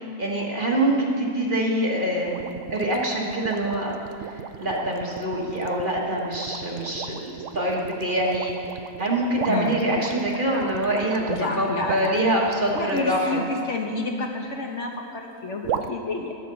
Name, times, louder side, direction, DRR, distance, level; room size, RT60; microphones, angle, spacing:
voice 1, 0.0-2.4 2.7-3.9 4.2-11.2 11.5-13.4, right 1 dB, 35° right, -2 dB, 1.6 m, -25 dB
sound 1, 2.3-13.3 15.6-15.9, right 8 dB, 65° right, 0.8 m, -35 dB
voice 2, 9.5-9.8 11.3-12.3 12.7-16.4, left 3 dB, 55° left, 1 dB, 1.2 m, -30 dB
11.5 x 8.5 x 6.8 m, 2.4 s
omnidirectional pair, 1.6 m